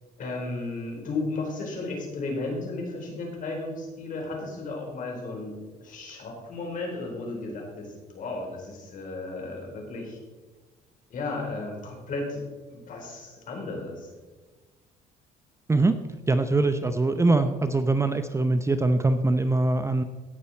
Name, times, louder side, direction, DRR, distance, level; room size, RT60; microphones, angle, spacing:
voice 1, 0.2-10.2 11.1-12.4 12.7-14.1, left 2 dB, 50° left, 0 dB, 4.4 m, -34 dB
voice 2, 16.3-20.0, right 2 dB, 15° right, 9 dB, 0.6 m, -23 dB
17.5 x 6.9 x 4.4 m, 1.3 s
cardioid pair, 110°, 17 cm